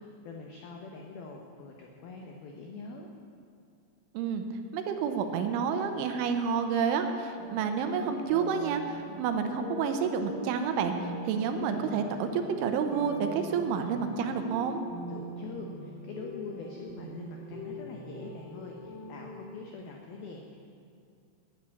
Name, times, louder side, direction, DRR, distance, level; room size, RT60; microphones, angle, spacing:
voice 1, 0.0-3.1 15.1-20.6, left 3 dB, 85° left, 1 dB, 2.1 m, -44 dB
voice 2, 4.7-14.8, right 6 dB, 85° right, 6 dB, 3.1 m, -29 dB
sound 1, 7.4-19.3, right 1 dB, 55° left, 3.2 m, -43 dB
10.5 x 10.5 x 8.5 m, 2.3 s
omnidirectional pair, 5.7 m